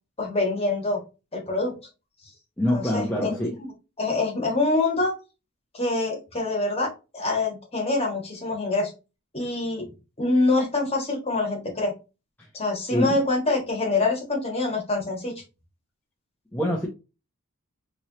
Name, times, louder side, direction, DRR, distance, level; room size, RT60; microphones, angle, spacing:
voice 1, 0.2-1.0 1.3-1.7 2.7-3.3 4.0-5.1 5.7-8.9 9.3-9.9 10.2-11.9 12.5-15.3, left 2 dB, 25° left, 1.4 m, -25 dB
voice 2, 2.6-3.6 12.4-12.5 12.9-13.2 16.5-16.9, equal, 10° left, 0.6 m, -25 dB
4.4 x 3.1 x 2.8 m
head